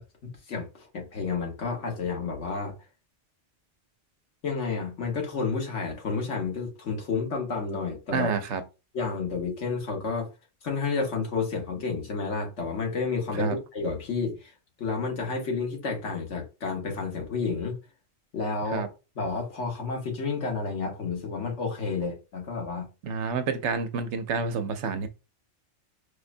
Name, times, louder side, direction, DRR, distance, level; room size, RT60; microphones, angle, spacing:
voice 1, 0.0-2.7 4.4-8.3 8.9-10.3 10.6-14.5 14.8-17.7 18.3-18.8 19.2-22.9, left 4 dB, 90° left, 1.4 m, -30 dB
voice 2, 8.1-8.6 13.3-13.6 18.7-18.9 23.0-25.1, right 5 dB, 80° right, 0.9 m, -29 dB
4.6 x 2.1 x 2.5 m
omnidirectional pair, 1.2 m